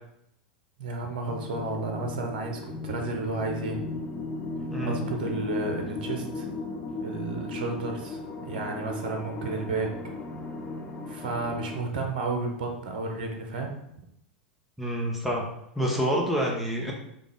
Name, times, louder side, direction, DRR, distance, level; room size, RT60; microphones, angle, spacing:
voice 1, 0.8-3.8 4.8-6.5 7.0-9.9 11.1-13.7, right 3 dB, 60° right, 3 dB, 0.9 m, -32 dB
sound 1, 1.2-11.8, left 3 dB, 20° left, 0.7 m, -36 dB
voice 2, 14.8-15.4 15.8-16.9, equal, 5° right, -2 dB, 1.0 m, -27 dB
5.0 x 2.4 x 3.8 m, 0.76 s
figure-of-eight pair, 90°, 5 cm